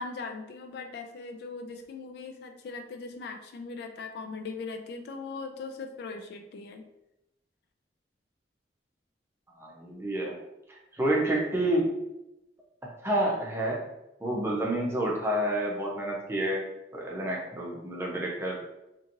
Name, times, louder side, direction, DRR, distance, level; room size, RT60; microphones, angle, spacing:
voice 1, 0.0-6.8, left 4 dB, 65° left, 5 dB, 0.3 m, -39 dB
voice 2, 9.6-10.4 10.7-12.0 13.0-13.8 14.2-16.6 16.9-18.6, right 1 dB, 15° right, -3 dB, 0.6 m, -29 dB
2.8 x 2.6 x 2.5 m, 0.91 s
head